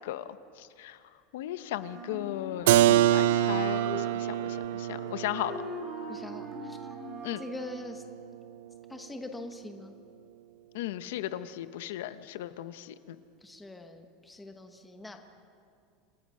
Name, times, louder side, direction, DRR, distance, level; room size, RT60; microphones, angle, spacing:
voice 1, 0.0-1.0 1.3-5.6 7.2-7.4 10.7-13.2, left 13 dB, 75° left, 12 dB, 0.9 m, -36 dB
Wind instrument woodwind instrument, 1.7-7.5, left 1 dB, 15° right, 3.6 m, -42 dB
Keyboard (musical), 2.7-8.3, right 13 dB, 70° right, 0.4 m, -27 dB
voice 2, 6.1-6.8 7.4-8.0 8.9-9.9 13.4-15.2, left 2 dB, 5° left, 5 dB, 1.0 m, -43 dB
27.0 x 19.0 x 5.6 m, 2.4 s
supercardioid pair, 175°, 0 cm